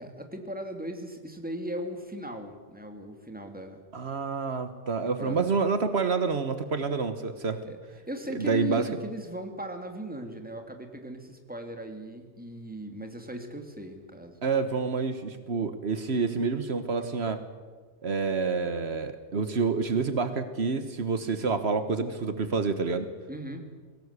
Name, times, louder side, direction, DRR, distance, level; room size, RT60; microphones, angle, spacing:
voice 1, 0.0-3.8 5.2-5.6 7.6-7.8 8.1-14.4 23.3-23.7, right 1 dB, 10° right, 4 dB, 2.5 m, -38 dB
voice 2, 3.9-7.6 8.3-8.9 14.4-17.4 18.0-23.1, right 4 dB, 70° right, 10 dB, 1.5 m, -28 dB
22.0 x 18.0 x 8.2 m, 1.4 s
omnidirectional pair, 1.1 m